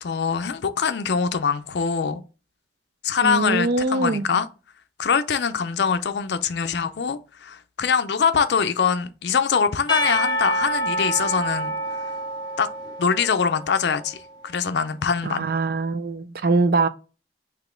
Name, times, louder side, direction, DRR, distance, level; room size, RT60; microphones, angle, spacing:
voice 1, 0.0-2.2 3.0-4.5 5.0-11.7 12.6-12.7 13.0-15.5, left 6 dB, 70° left, 0.5 m, -23 dB
voice 2, 3.2-4.3 15.3-16.9, right 3 dB, 55° right, 0.4 m, -22 dB
Percussion / Church bell, 9.9-14.1, equal, 25° left, 0.6 m, -27 dB
4.0 x 3.0 x 4.4 m
head